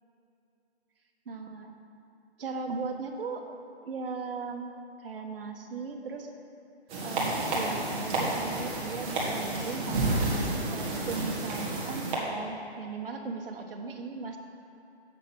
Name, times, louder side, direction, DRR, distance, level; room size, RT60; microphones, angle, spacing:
voice 1, 1.2-1.7 2.4-3.4 3.8-4.7 5.0-6.3 7.0-10.3 10.7-14.4, right 4 dB, 55° right, 3 dB, 1.3 m, -37 dB
sound 1, 6.9-12.2, right 2 dB, 15° right, 1.5 m, -30 dB
8.2 x 7.6 x 6.0 m, 2.8 s
hypercardioid pair, 145°, 33 cm